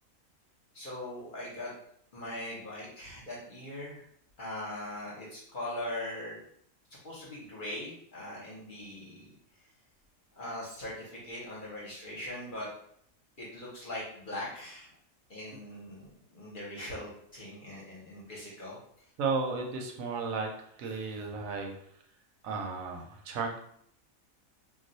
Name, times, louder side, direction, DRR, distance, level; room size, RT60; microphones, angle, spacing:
voice 1, 0.7-1.7 2.1-4.0 4.4-6.4 7.0-9.3 10.3-12.7 13.4-14.9 15.3-19.1, left 1 dB, 45° left, -5 dB, 0.8 m, -41 dB
voice 2, 19.2-20.5 20.8-21.7 22.4-23.6, right 4 dB, 75° right, 2 dB, 1.0 m, -33 dB
2.3 x 2.3 x 3.9 m, 0.67 s
omnidirectional pair, 1.5 m